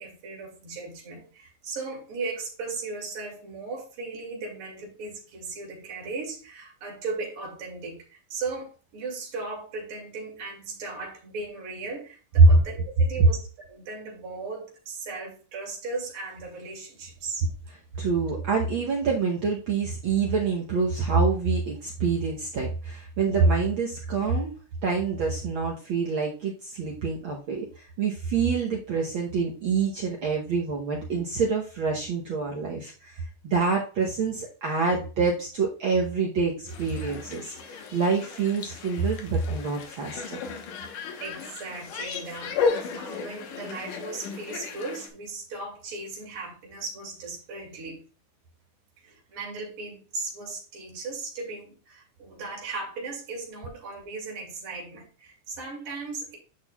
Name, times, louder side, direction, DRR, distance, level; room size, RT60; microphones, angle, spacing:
voice 1, 0.0-8.0 8.3-13.4 13.7-17.4 41.2-48.0 49.0-56.4, right 3 dB, 45° right, -2 dB, 3.0 m, -37 dB
voice 2, 18.0-24.5 24.8-40.4, right 4 dB, 80° right, -1 dB, 1.1 m, -25 dB
sound 1, 36.7-45.1, left 5 dB, 85° left, 2.7 m, -34 dB
9.4 x 6.2 x 2.3 m, 0.36 s
omnidirectional pair, 3.6 m